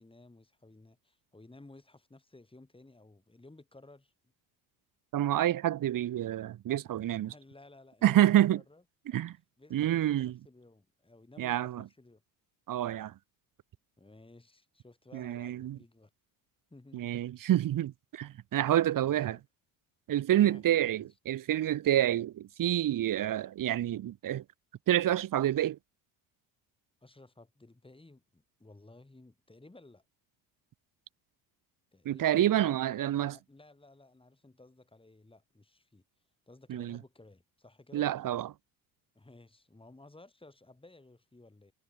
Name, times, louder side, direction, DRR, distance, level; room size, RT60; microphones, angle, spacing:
voice 1, 0.0-4.1 7.1-8.8 9.6-12.2 14.0-16.1 16.7-17.1 19.0-19.4 20.4-21.1 21.9-22.0 27.0-30.0 31.9-36.0 36.5-38.1 39.1-41.7, left 2 dB, 10° left, 7.3 m, -56 dB
voice 2, 5.1-7.3 8.0-8.6 9.1-9.4 9.7-10.3 11.4-11.8 12.7-13.1 15.1-15.8 16.9-19.4 20.1-24.4 24.9-25.8 32.0-33.3 36.7-37.0 37.9-38.5, right 12 dB, 45° right, 1.0 m, -28 dB
supercardioid pair, 80°, 44 cm